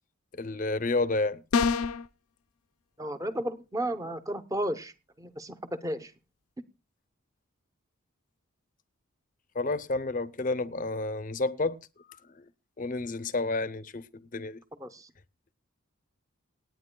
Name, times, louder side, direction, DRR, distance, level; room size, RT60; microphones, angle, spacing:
voice 1, 0.3-1.4 9.5-12.5 12.8-14.6, left 2 dB, 35° left, 0.6 m, -31 dB
sound 1, 1.5-2.1, left 5 dB, 85° left, 0.6 m, -25 dB
voice 2, 3.0-4.9 5.2-6.1 14.8-15.1, right 1 dB, 15° right, 0.7 m, -33 dB
27.5 x 9.3 x 2.2 m
head